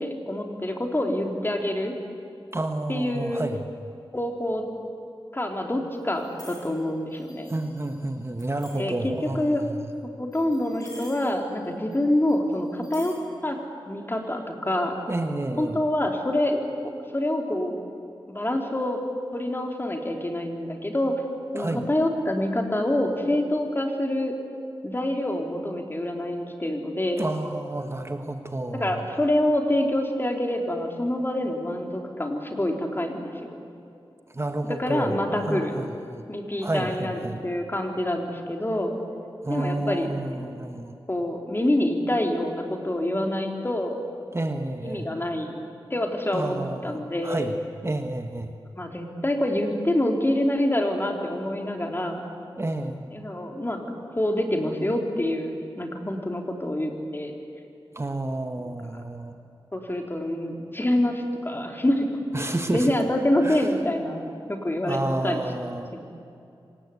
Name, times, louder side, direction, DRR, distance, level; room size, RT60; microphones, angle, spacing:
voice 1, 0.0-1.9 2.9-3.5 4.1-4.7 5.3-7.5 8.8-9.6 10.2-13.1 13.4-13.6 13.9-14.9 15.6-17.8 18.3-19.0 19.3-21.1 21.5-24.3 24.8-27.3 28.7-33.5 34.7-35.8 36.3-38.9 39.5-40.5 41.1-44.0 44.8-45.6 45.9-46.5 46.8-47.5 48.7-52.2 53.1-53.8 54.1-57.3 58.9-59.0 59.7-62.1 62.4-65.4 65.9-66.0, left 1 dB, 25° left, 2 dB, 3.4 m, -26 dB
voice 2, 2.5-3.6 7.5-9.8 15.1-15.8 21.6-21.8 27.2-29.1 34.3-36.2 36.6-37.4 39.4-41.0 44.3-45.1 46.3-47.6 47.8-48.5 52.6-53.1 57.9-59.3 62.3-62.9 63.4-63.6 64.8-65.9, right 2 dB, 30° right, 6 dB, 1.3 m, -30 dB
sound 1, 5.9-6.8 7.1-9.3 10.3-11.7 11.9-12.0 12.3-13.1, left 1 dB, 45° left, 6.3 m, -49 dB
26.0 x 19.0 x 8.5 m, 2.5 s
wide cardioid pair, 70°, 9 cm